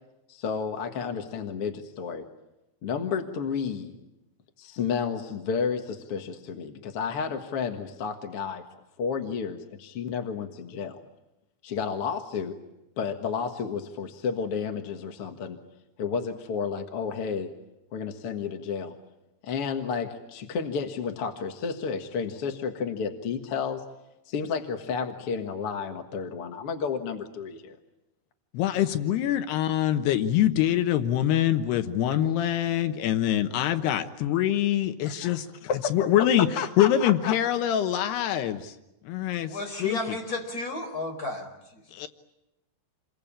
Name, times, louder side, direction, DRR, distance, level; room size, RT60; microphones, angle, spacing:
voice 1, 0.3-2.3 2.8-3.9 4.6-8.6 9.0-11.0 11.6-12.6 13.0-15.6 16.0-17.5 17.9-18.9 19.4-23.8 24.3-27.8 35.0-37.4, left 6 dB, 50° left, 4 dB, 1.8 m, -31 dB
voice 2, 28.5-35.5 35.9-38.7 39.1-40.0 41.9-42.1, left 11 dB, 85° left, 8 dB, 3.2 m, -24 dB
voice 3, 39.5-41.8, left 2 dB, 20° left, 2 dB, 5.0 m, -33 dB
28.5 x 23.0 x 8.7 m, 0.95 s
omnidirectional pair, 4.6 m